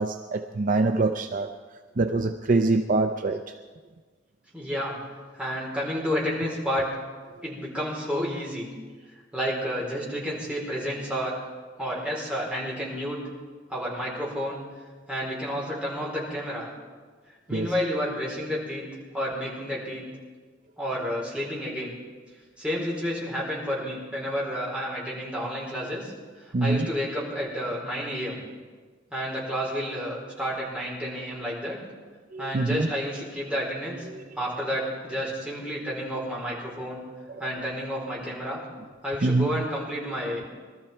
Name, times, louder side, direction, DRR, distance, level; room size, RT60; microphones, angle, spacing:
voice 1, 0.0-1.5 2.0-3.6 17.5-17.7 26.5-26.9 32.3-32.9 34.1-34.2 37.4-37.5 39.2-39.6, right 3 dB, 45° right, 0.5 m, -25 dB
voice 2, 4.5-5.0 5.3-6.9 7.4-8.7 9.3-11.4 11.8-13.2 13.7-14.6 15.1-16.7 17.5-18.9 19.1-20.1 20.8-21.9 22.6-26.1 26.4-28.4 29.1-31.8 32.4-34.1 34.4-37.0 37.4-38.6 39.0-40.5, equal, 5° right, 4.5 m, -30 dB
21.5 x 13.0 x 4.5 m
head